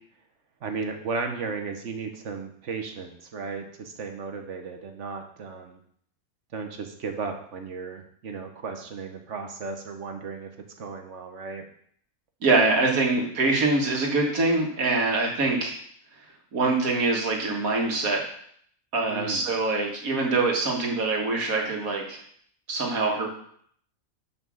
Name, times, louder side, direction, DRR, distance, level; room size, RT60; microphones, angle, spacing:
voice 1, 0.6-5.8 6.5-10.5 10.8-11.6 19.1-19.5, right 4 dB, 60° right, 5 dB, 1.2 m, -35 dB
voice 2, 12.4-15.8 16.5-18.2 18.9-22.2 22.7-23.3, right 3 dB, 75° right, 1 dB, 1.8 m, -24 dB
5.8 x 5.5 x 6.2 m, 0.63 s
omnidirectional pair, 1.5 m